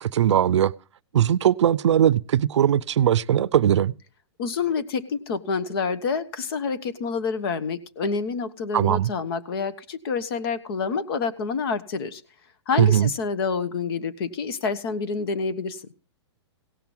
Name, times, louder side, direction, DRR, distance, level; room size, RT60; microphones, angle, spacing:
voice 1, 0.0-0.7 1.1-3.9 8.7-9.1 12.8-13.1, right 10 dB, 80° right, 0.5 m, -20 dB
voice 2, 4.4-12.2 12.7-15.9, left 5 dB, 55° left, 1.3 m, -28 dB
17.0 x 5.9 x 7.3 m
hypercardioid pair, 145°, 15 cm